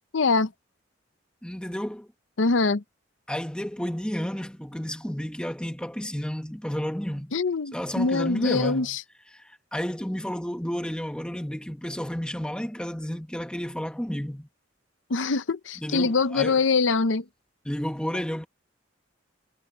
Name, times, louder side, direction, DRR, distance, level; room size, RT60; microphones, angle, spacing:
voice 1, 0.1-0.5 2.4-2.8 7.3-9.0 15.1-17.2, left 4 dB, 80° left, 0.7 m, -23 dB
voice 2, 1.4-2.1 3.3-7.3 7.7-8.9 9.3-14.5 15.8-16.6 17.6-18.5, equal, 5° left, 1.1 m, -31 dB
head